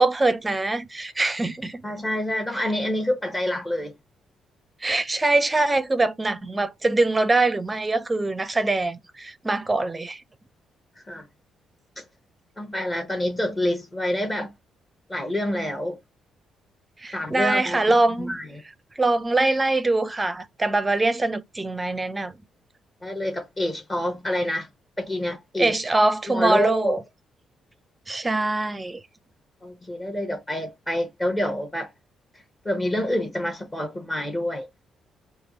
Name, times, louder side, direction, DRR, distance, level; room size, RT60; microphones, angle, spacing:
voice 1, 0.0-1.8 2.5-2.6 4.8-10.2 17.0-18.4 19.0-22.4 25.6-27.0 28.1-29.0, right 2 dB, 20° right, 0.5 m, -23 dB
voice 2, 1.8-3.9 11.1-11.3 12.0-12.1 12.6-14.5 15.1-16.0 17.1-18.6 23.0-24.7 25.0-25.8 26.3-27.0 29.6-31.9 32.6-34.7, left 1 dB, 25° left, 0.9 m, -27 dB
3.3 x 2.4 x 2.7 m
cardioid pair, 90°, 0 cm